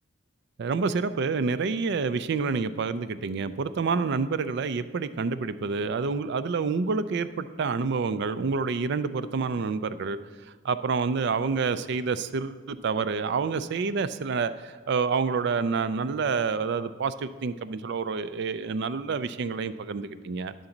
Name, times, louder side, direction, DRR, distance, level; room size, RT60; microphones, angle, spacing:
voice 1, 0.6-10.2 10.6-20.5, right 4 dB, 60° right, 13 dB, 0.4 m, -28 dB
11.0 x 3.9 x 7.1 m, 1.4 s
head